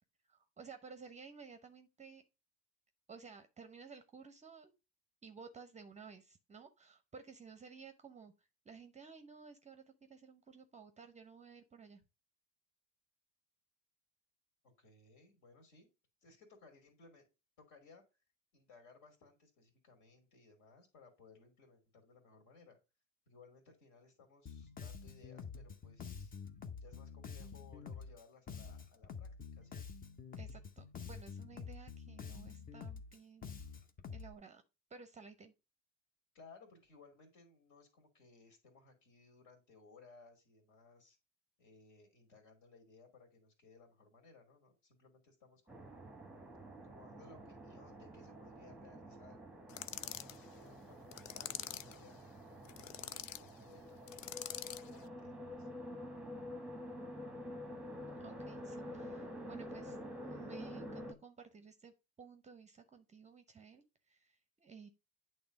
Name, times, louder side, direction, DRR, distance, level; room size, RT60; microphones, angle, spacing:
voice 1, 0.3-2.2 3.1-4.7 5.2-12.0 30.4-33.5 34.1-34.6 34.9-35.5 58.2-60.0 60.3-61.9 62.2-64.9, right 5 dB, 20° right, 9 dB, 0.7 m, -55 dB
voice 2, 14.8-15.9 16.2-17.3 17.6-18.0 18.5-22.8 23.3-26.3 26.8-29.8 36.3-41.2 41.6-45.9 46.8-49.4 50.0-52.2 52.8-54.1 54.8-55.7, left 4 dB, 55° left, 4 dB, 2.5 m, -62 dB
Bass guitar, 24.5-34.3, left 6 dB, 25° left, 0.8 m, -48 dB
sound 1, 45.7-61.1, equal, 5° right, 1.1 m, -48 dB
sound 2, 49.7-50.4 51.1-52.0 52.6-53.4 54.1-54.9, left 11 dB, 85° left, 0.5 m, -44 dB
8.7 x 3.3 x 5.2 m, 0.28 s
hypercardioid pair, 80°, 38 cm